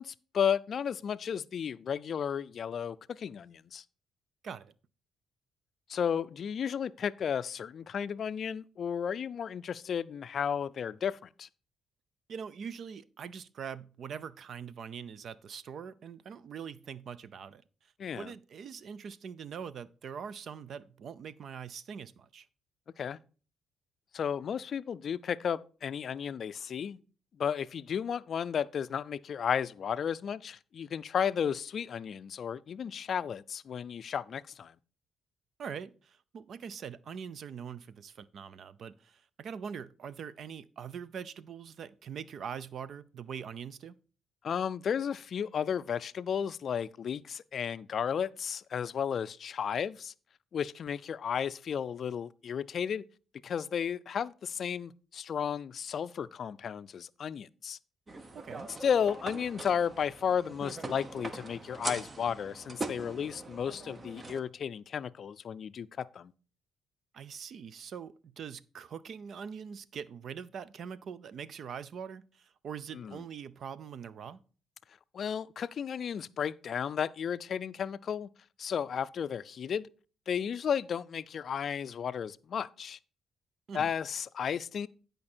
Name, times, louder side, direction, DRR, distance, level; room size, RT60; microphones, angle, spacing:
voice 1, 0.0-3.8 5.9-11.5 18.0-18.3 23.0-23.2 24.1-27.0 27.4-34.7 44.4-50.1 50.5-53.0 53.4-57.8 58.8-66.3 72.9-73.2 75.1-78.3 78.6-79.9 80.3-83.0 83.7-84.9, left 7 dB, 55° left, 0.4 m, -33 dB
voice 2, 12.3-17.6 18.2-22.5 35.6-44.0 58.3-58.7 67.1-74.4 83.7-83.9, right 7 dB, 60° right, 0.5 m, -43 dB
sound 1, 58.1-64.4, right 2 dB, 30° right, 0.9 m, -42 dB
11.0 x 5.2 x 4.4 m
cardioid pair, 90°, 0 cm